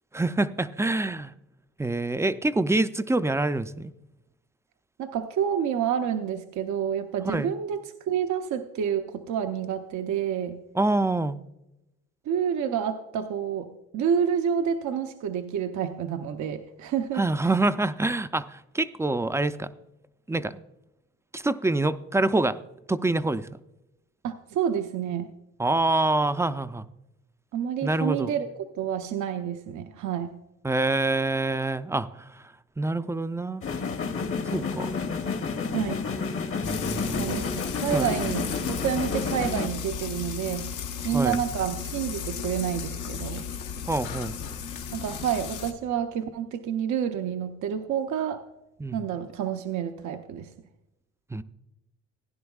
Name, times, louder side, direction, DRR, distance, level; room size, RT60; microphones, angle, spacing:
voice 1, 0.1-1.3 1.8-3.9 7.2-7.5 10.7-11.4 17.1-19.7 20.3-20.6 21.3-22.6 22.9-23.5 25.6-26.9 27.8-28.3 30.6-32.4 32.8-33.6 34.5-34.9 36.6-37.4 37.9-38.1 41.1-41.4 43.9-44.4 48.8-49.0 51.3-51.4, right 2 dB, 10° right, 12 dB, 0.4 m, -26 dB
voice 2, 5.0-7.8 8.1-10.6 12.3-17.2 24.2-25.3 27.5-28.5 28.8-30.3 35.7-36.0 37.2-40.7 41.0-43.4 44.9-48.5 48.9-50.5, right 8 dB, 75° right, 7 dB, 0.7 m, -29 dB
sound 1, 33.6-39.7, left 5 dB, 45° left, 1.0 m, -30 dB
Frying (food), 36.6-45.7, left 7 dB, 85° left, 1.0 m, -35 dB
16.0 x 10.0 x 2.4 m, 0.93 s
cardioid pair, 90°, 30 cm